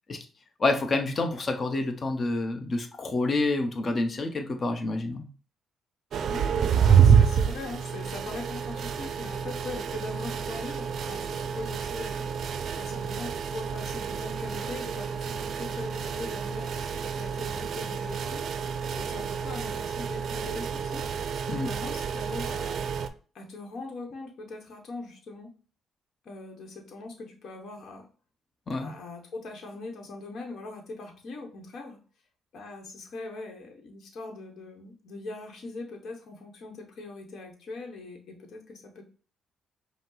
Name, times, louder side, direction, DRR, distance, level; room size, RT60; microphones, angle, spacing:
voice 1, 0.6-5.3 21.5-21.7 28.7-28.9, left 2 dB, 40° left, 5 dB, 0.8 m, -28 dB
sound 1, 6.1-23.1, right 7 dB, 65° right, 0.4 m, -28 dB
voice 2, 6.2-12.3 12.7-18.5 18.9-21.0 21.6-22.8 23.3-25.5 26.2-28.1 28.8-32.0 32.5-39.0, left 3 dB, 65° left, 1 dB, 1.0 m, -41 dB
5.2 x 2.0 x 3.9 m, 0.39 s
cardioid pair, 90°, 0 cm